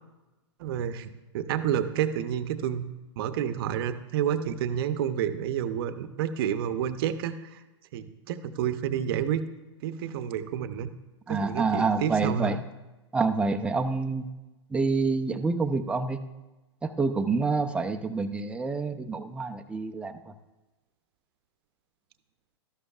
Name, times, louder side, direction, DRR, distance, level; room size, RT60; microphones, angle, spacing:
voice 1, 0.6-2.9 3.2-7.6 7.9-9.4 9.8-10.9 11.3-12.6, right 9 dB, 55° right, 11 dB, 0.7 m, -29 dB
voice 2, 11.3-12.6 13.1-14.3 14.7-16.2 16.8-20.3, right 4 dB, 5° right, 5 dB, 0.5 m, -27 dB
13.0 x 11.0 x 2.4 m, 1.1 s
hypercardioid pair, 125°, 15 cm